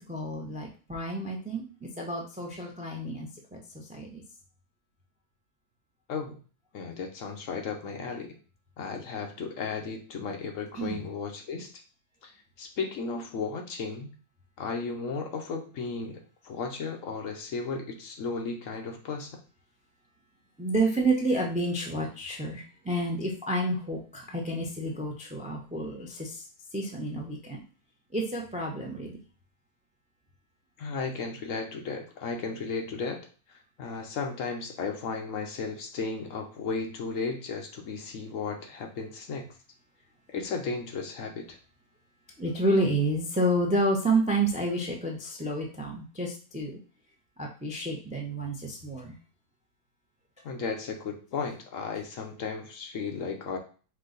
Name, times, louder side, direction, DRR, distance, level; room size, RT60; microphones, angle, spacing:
voice 1, 0.1-3.6 3.9-4.2 10.7-11.0 20.6-26.4 26.7-27.6 28.1-29.2 42.4-46.8 47.4-49.1, right 1 dB, 10° right, 0 dB, 0.3 m, -29 dB
voice 2, 6.7-8.3 8.8-11.7 12.2-12.3 12.6-14.1 14.6-19.4 30.8-39.5 40.3-41.6 50.4-53.6, left 4 dB, 65° left, 3 dB, 1.0 m, -35 dB
4.5 x 2.6 x 3.9 m, 0.39 s
omnidirectional pair, 1.6 m